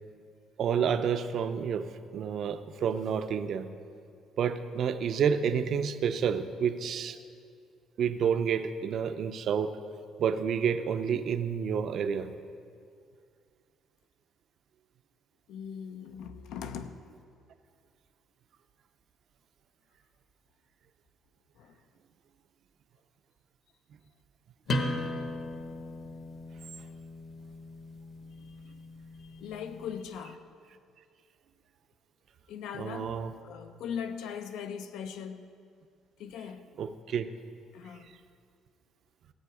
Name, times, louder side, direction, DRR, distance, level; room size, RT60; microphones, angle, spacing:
voice 1, 0.6-1.9 2.1-3.7 4.4-7.2 8.0-9.8 10.2-12.3 32.8-33.3 36.8-37.3, right 7 dB, 45° right, 0.5 m, -29 dB
voice 2, 15.5-17.0 21.6-21.8 28.5-28.6 29.2-30.5 32.5-35.5 36.2-36.7 37.7-38.1, left 7 dB, 75° left, 0.6 m, -40 dB
sound 1, 24.7-30.1, left 1 dB, 40° left, 1.1 m, -37 dB
16.5 x 7.8 x 4.8 m
cardioid pair, 170°, 0 cm